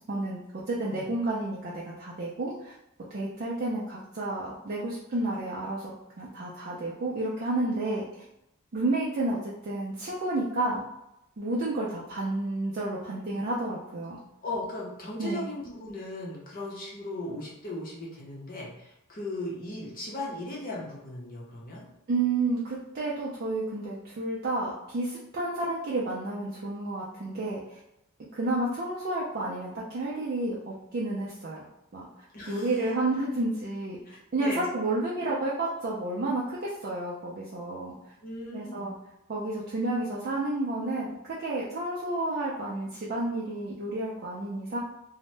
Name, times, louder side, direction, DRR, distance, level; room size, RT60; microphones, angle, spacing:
voice 1, 0.1-2.7 3.1-8.2 8.7-10.8 11.4-14.2 15.2-15.4 22.1-27.8 28.3-31.6 31.9-32.1 32.5-34.0 34.3-37.9 38.5-38.9 39.3-44.8, right 2 dB, 45° right, -5 dB, 0.4 m, -31 dB
voice 2, 14.4-21.8 32.3-32.7 34.0-34.6 38.2-38.9, left 1 dB, 40° left, -4 dB, 0.7 m, -37 dB
2.7 x 2.1 x 3.2 m, 0.85 s
head